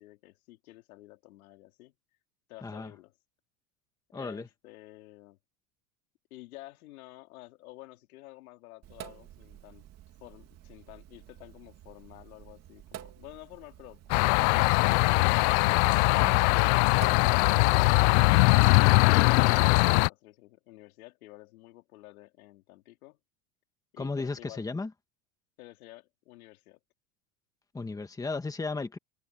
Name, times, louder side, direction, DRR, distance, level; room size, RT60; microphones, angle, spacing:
voice 1, 0.0-2.0 2.5-3.1 4.1-5.4 6.3-9.9 10.2-15.3 17.9-23.2 23.9-24.7 25.6-26.8, left 18 dB, 90° left, 4.0 m, -51 dB
voice 2, 2.6-2.9 4.1-4.5 16.2-16.5 24.0-24.9 27.7-29.0, left 3 dB, 10° left, 1.6 m, -35 dB
Sink (filling or washing), 8.8-18.8, right 12 dB, 35° right, 2.7 m, -50 dB
sound 1, 14.1-20.1, left 27 dB, 60° left, 0.5 m, -21 dB
supercardioid pair, 140°, 42 cm